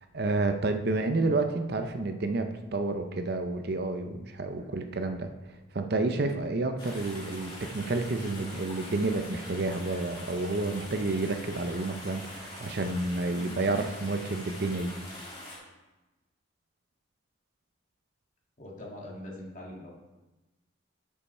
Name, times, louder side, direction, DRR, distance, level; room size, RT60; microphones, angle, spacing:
voice 1, 0.1-14.9, right 2 dB, 55° right, 7 dB, 0.6 m, -30 dB
sound 1, 6.8-15.6, left 1 dB, 25° left, 3.1 m, -44 dB
voice 2, 18.6-19.9, left 1 dB, 40° left, -2 dB, 2.0 m, -43 dB
11.0 x 5.5 x 4.3 m, 1.1 s
head